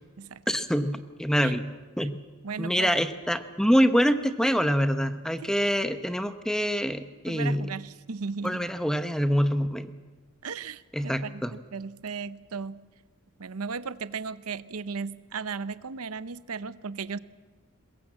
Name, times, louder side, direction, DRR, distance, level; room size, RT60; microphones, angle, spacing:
voice 1, 0.5-1.7 2.0-2.2 2.6-7.7 8.4-9.9 10.9-11.5, equal, 5° left, 10 dB, 0.8 m, -25 dB
voice 2, 2.4-2.9 7.3-8.6 10.4-12.9 13.4-17.2, right 5 dB, 85° right, 15 dB, 0.7 m, -36 dB
22.5 x 21.5 x 7.5 m, 1.4 s
head